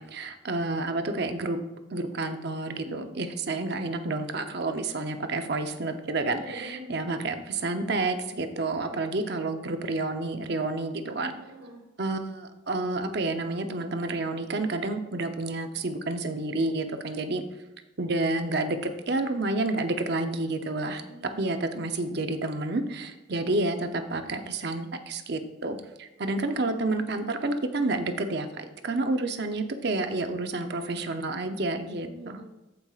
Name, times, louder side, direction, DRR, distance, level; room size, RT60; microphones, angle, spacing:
voice 1, 0.0-1.6 1.9-11.3 12.0-17.4 18.0-21.0 21.4-32.4, right 2 dB, 55° right, 7 dB, 0.7 m, -29 dB
voice 2, 2.7-3.1 6.2-7.3 11.4-11.8 20.9-21.4 26.2-26.9 32.0-32.4, right 1 dB, 80° right, -3 dB, 1.2 m, -45 dB
14.5 x 5.3 x 2.4 m, 1.0 s
head